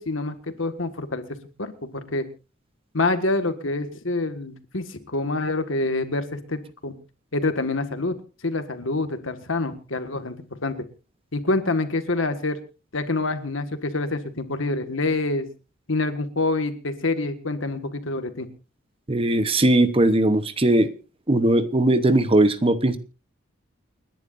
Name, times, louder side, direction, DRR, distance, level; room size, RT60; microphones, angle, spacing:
voice 1, 0.0-2.3 2.9-7.0 7.3-8.2 8.4-10.9 11.3-12.6 12.9-15.5 15.9-18.5, left 2 dB, 80° left, 9 dB, 1.7 m, -26 dB
voice 2, 19.1-20.9 21.3-23.0, right 1 dB, 30° right, 12 dB, 0.9 m, -19 dB
29.5 x 10.5 x 2.6 m, 0.33 s
head